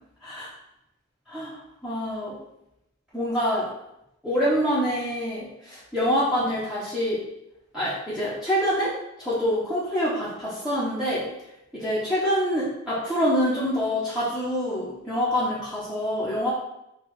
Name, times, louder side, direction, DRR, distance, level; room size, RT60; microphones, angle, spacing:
voice 1, 1.3-2.4 3.1-3.7 4.2-7.2 7.7-11.3 11.7-16.5, equal, 5° right, -11 dB, 0.9 m, -26 dB
4.5 x 2.4 x 4.6 m, 0.85 s
head